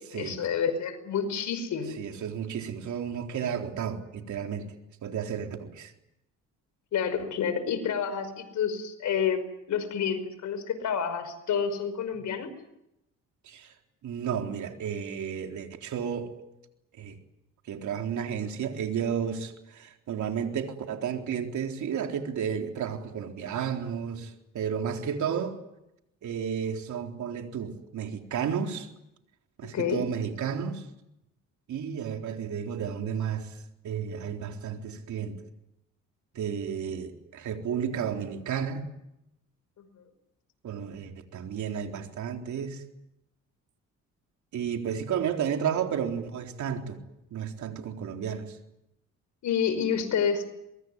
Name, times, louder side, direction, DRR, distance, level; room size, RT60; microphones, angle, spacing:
voice 1, 0.1-2.0 6.9-9.4 9.7-12.5 29.7-30.0 49.4-50.4, left 7 dB, 70° left, 5.5 m, -29 dB
voice 2, 2.0-4.7 5.0-5.9 13.4-13.7 14.0-16.3 17.0-17.2 17.7-25.6 26.2-28.9 29.6-30.9 31.7-33.6 33.8-35.4 36.3-38.9 40.6-42.8 44.5-47.0 47.3-48.6, right 7 dB, 70° right, 4.0 m, -32 dB
24.5 x 22.5 x 9.6 m
cardioid pair, 90°, 30 cm